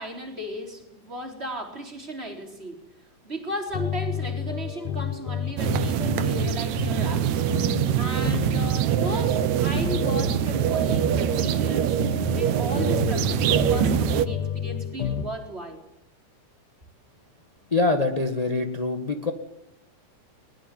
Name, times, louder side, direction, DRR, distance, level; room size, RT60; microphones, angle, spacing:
voice 1, 0.0-2.8 3.2-7.5 8.0-12.0 12.3-15.8, equal, 20° right, 3 dB, 4.2 m, -35 dB
sound 1, 3.7-15.3, left 8 dB, 80° left, 3.1 m, -31 dB
sound 2, 5.6-14.3, right 11 dB, 70° right, 2.2 m, -24 dB
voice 2, 17.7-19.3, left 3 dB, 25° left, 5 dB, 0.8 m, -24 dB
21.5 x 21.5 x 9.3 m, 0.83 s
omnidirectional pair, 3.5 m